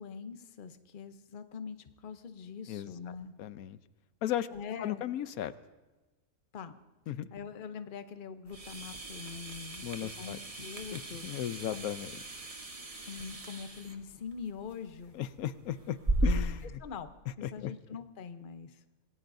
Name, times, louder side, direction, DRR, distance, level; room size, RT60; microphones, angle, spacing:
voice 1, 0.0-3.3 4.5-5.1 6.5-6.7 7.3-11.8 13.0-15.2 16.2-16.4 16.8-17.1 17.4-18.8, left 6 dB, 45° left, 9 dB, 0.9 m, -44 dB
voice 2, 3.4-3.8 4.2-4.5 4.8-5.5 7.1-7.3 9.8-10.4 10.9-12.1 15.1-16.0 16.2-16.7 17.4-17.7, left 11 dB, 85° left, 13 dB, 1.1 m, -35 dB
sound 1, 8.5-16.7, right 1 dB, 25° right, 1.2 m, -37 dB
26.5 x 19.0 x 2.7 m, 1.1 s
omnidirectional pair, 1.5 m